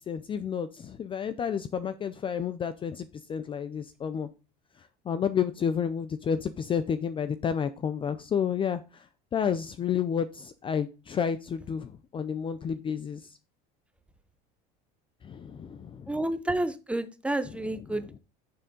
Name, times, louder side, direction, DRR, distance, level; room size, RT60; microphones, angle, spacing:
voice 1, 0.1-4.3 5.1-9.1 9.3-13.4 15.2-16.2 17.5-18.1, left 7 dB, 25° left, 12 dB, 0.5 m, -31 dB
voice 2, 16.1-18.2, right 1 dB, 5° right, 10 dB, 0.8 m, -30 dB
6.9 x 3.6 x 5.1 m, 0.31 s
supercardioid pair, 115°, 19 cm